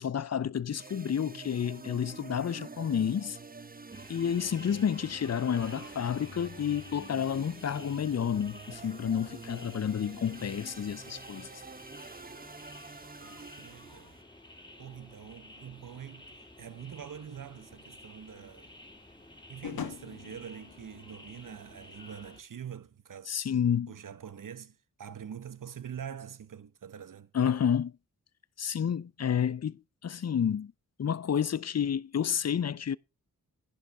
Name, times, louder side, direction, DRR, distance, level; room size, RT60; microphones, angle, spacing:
voice 1, 0.0-3.4 4.1-11.5 23.3-23.9 27.3-27.9 28.6-30.7 31.0-33.0, left 8 dB, 45° left, 0.6 m, -30 dB
sound 1, 0.7-14.2, right 4 dB, 25° right, 0.9 m, -47 dB
sound 2, 3.9-22.4, left 1 dB, 15° left, 2.9 m, -53 dB
voice 2, 13.2-14.2 14.8-18.8 19.5-23.3 23.9-27.3, right 8 dB, 60° right, 0.9 m, -45 dB
sound 3, 17.6-22.3, left 8 dB, 85° left, 1.6 m, -45 dB
11.5 x 11.0 x 3.6 m
cardioid pair, 50°, 35 cm